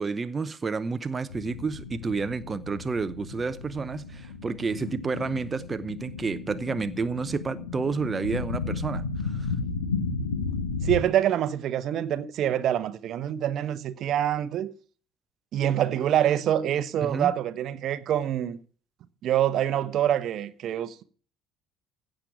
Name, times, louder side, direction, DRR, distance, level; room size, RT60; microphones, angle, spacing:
voice 1, 0.0-9.5 17.0-17.3, right 4 dB, 25° right, 0.8 m, -30 dB
sound 1, 1.3-11.0, left 4 dB, 85° left, 1.2 m, -33 dB
voice 2, 10.8-14.7 15.5-18.6 19.2-21.0, right 11 dB, 50° right, 0.9 m, -26 dB
16.0 x 6.3 x 7.0 m
figure-of-eight pair, 60°, 0 cm